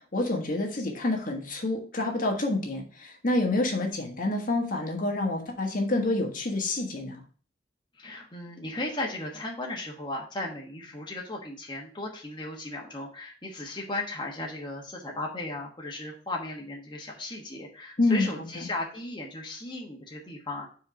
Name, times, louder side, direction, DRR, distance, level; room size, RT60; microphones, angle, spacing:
voice 1, 0.1-7.2 18.0-18.3, left 2 dB, 50° left, 2 dB, 1.4 m, -27 dB
voice 2, 7.9-20.7, left 2 dB, 25° left, -1 dB, 1.2 m, -36 dB
4.9 x 4.3 x 5.8 m, 0.41 s
head